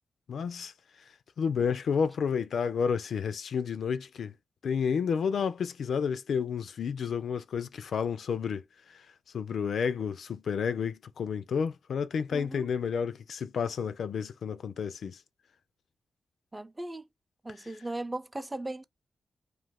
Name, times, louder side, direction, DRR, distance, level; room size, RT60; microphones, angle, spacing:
voice 1, 0.3-0.7 1.4-4.3 4.6-9.1 9.3-15.2, left 6 dB, 75° left, 0.3 m, -31 dB
voice 2, 12.3-12.7 16.5-17.1 17.4-18.8, right 2 dB, 20° right, 0.5 m, -37 dB
2.5 x 2.5 x 3.4 m
supercardioid pair, 45°, 0 cm